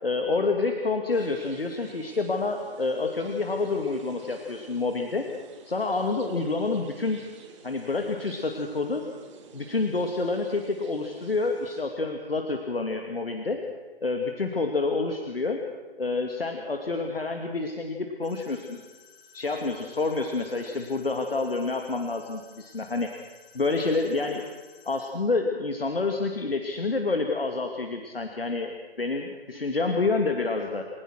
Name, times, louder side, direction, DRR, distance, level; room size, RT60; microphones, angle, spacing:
voice 1, 0.0-5.3 5.6-7.2 7.6-9.0 9.5-13.6 14.0-15.6 16.0-18.8 19.3-23.1 23.5-24.4 24.9-30.8, left 3 dB, 70° left, 4 dB, 2.4 m, -28 dB
sound 1, 1.1-11.8, right 5 dB, 30° right, 2.9 m, -50 dB
sound 2, 18.2-25.1, left 6 dB, 45° left, 6.1 m, -55 dB
29.5 x 16.5 x 6.3 m, 1.3 s
figure-of-eight pair, 140°, 30 cm